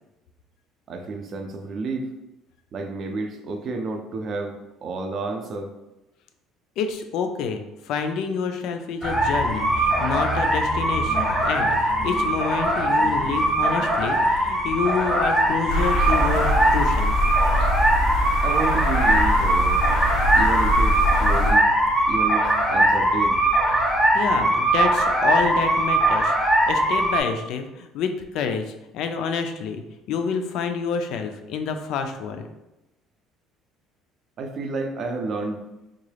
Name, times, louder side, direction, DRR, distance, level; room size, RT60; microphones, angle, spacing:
voice 1, 0.9-2.1 2.7-5.7 18.4-19.8 20.3-21.7 22.1-23.4 34.4-35.6, right 3 dB, 40° right, 5 dB, 0.4 m, -30 dB
voice 2, 6.8-17.2 24.1-29.8 30.1-32.5, left 6 dB, 60° left, 7 dB, 0.4 m, -28 dB
sound 1, 9.0-27.2, right 1 dB, ahead, 0.6 m, -21 dB
sound 2, 15.7-21.5, left 1 dB, 90° left, 0.9 m, -23 dB
3.6 x 2.3 x 3.2 m, 0.97 s
cardioid pair, 150°, 0 cm